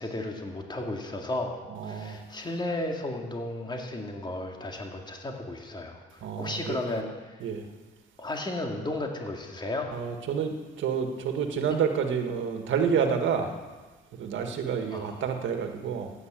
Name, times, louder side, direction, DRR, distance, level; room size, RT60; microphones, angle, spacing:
voice 1, 0.0-1.5 1.8-7.4 8.2-9.9 14.9-15.2, left 2 dB, 20° left, 2 dB, 2.3 m, -34 dB
voice 2, 1.7-2.2 6.2-6.8 7.4-7.6 9.9-13.5 14.1-16.1, right 7 dB, 75° right, 5 dB, 1.8 m, -29 dB
15.5 x 9.6 x 7.6 m, 1.3 s
cardioid pair, 90°, 20 cm